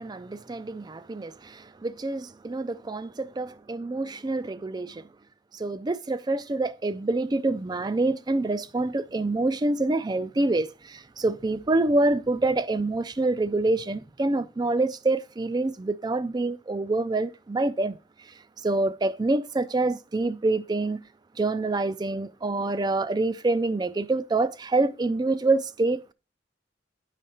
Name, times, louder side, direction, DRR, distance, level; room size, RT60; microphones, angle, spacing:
voice 1, 0.0-5.1 5.5-18.0 18.6-21.0 21.4-26.1, right 2 dB, 20° right, 0.4 m, -26 dB
10.0 x 5.0 x 4.2 m
head